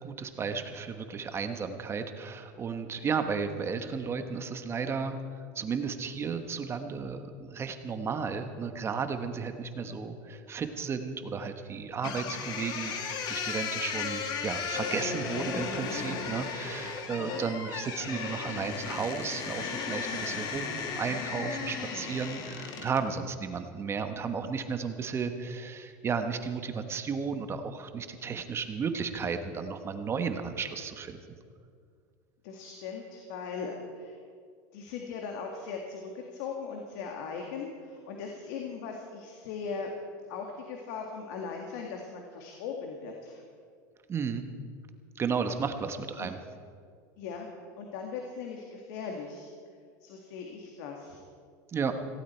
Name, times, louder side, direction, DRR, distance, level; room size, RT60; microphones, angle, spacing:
voice 1, 0.0-5.2 5.5-31.2 44.1-44.4 45.2-46.4 51.7-51.9, right 5 dB, 25° right, 8 dB, 1.2 m, -34 dB
sound 1, 12.0-23.1, left 5 dB, 45° left, 2.0 m, -35 dB
voice 2, 17.1-17.4 32.4-34.2 34.7-39.9 40.3-43.4 46.2-46.3 47.2-47.5 47.8-49.5 50.0-51.2, left 5 dB, 70° left, 2 dB, 2.0 m, -39 dB
17.5 x 16.5 x 4.5 m, 2.2 s
supercardioid pair, 125°, 10 cm